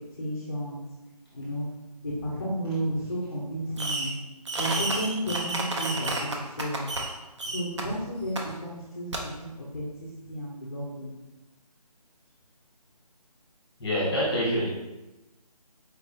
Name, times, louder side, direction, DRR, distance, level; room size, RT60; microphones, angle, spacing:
voice 1, 0.1-0.8 1.3-1.7 2.0-4.1 4.6-6.9 7.4-11.1, equal, 25° left, -5 dB, 0.5 m, -33 dB
Fireworks, 3.8-4.2 4.5-7.1 7.4-7.8 8.4-8.5 9.1-9.2, right 2 dB, 45° right, 0.6 m, -31 dB
voice 2, 13.8-14.7, equal, 5° left, -7 dB, 1.1 m, -26 dB
4.4 x 3.3 x 2.6 m, 1.1 s
figure-of-eight pair, 170°, 20 cm